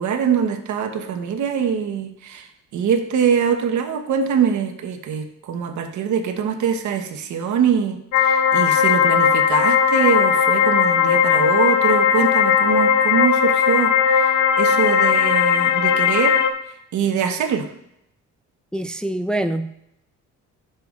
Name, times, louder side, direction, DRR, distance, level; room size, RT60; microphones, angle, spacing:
voice 1, 0.0-16.4 16.9-17.7, right 7 dB, 75° right, 6 dB, 1.1 m, -23 dB
sound 1, 8.1-16.5, left 7 dB, 80° left, 0.7 m, -17 dB
voice 2, 18.7-19.8, right 1 dB, 5° left, 8 dB, 0.4 m, -25 dB
10.5 x 6.9 x 2.4 m, 0.76 s
cardioid pair, 90°, 30 cm